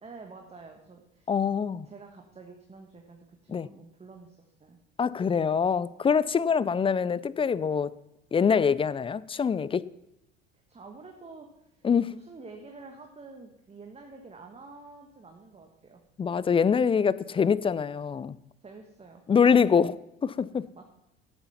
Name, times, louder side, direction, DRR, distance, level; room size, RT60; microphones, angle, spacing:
voice 1, 0.0-1.3 1.8-4.8 10.7-16.0 18.6-19.4 20.7-20.8, right 3 dB, 20° right, 1.5 m, -48 dB
voice 2, 1.3-1.9 3.5-3.7 5.0-7.9 8.3-9.8 11.8-12.1 16.2-18.4 19.3-20.0 20.2-20.6, left 6 dB, 20° left, 0.4 m, -24 dB
11.5 x 8.6 x 5.8 m
hypercardioid pair, 75°, 30 cm